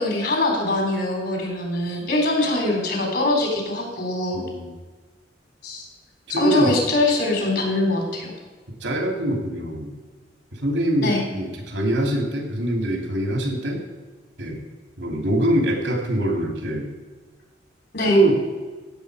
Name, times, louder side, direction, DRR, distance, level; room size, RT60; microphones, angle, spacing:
voice 1, 0.0-4.4 5.6-5.8 6.3-8.3 11.0-11.2 17.9-18.2, left 2 dB, 60° left, 1 dB, 3.8 m, -23 dB
voice 2, 4.3-4.7 6.3-6.8 8.8-9.9 10.5-13.8 14.4-14.6 15.0-16.9 18.0-18.4, right 1 dB, 85° right, 2 dB, 2.9 m, -23 dB
16.0 x 7.4 x 5.0 m, 1.4 s
head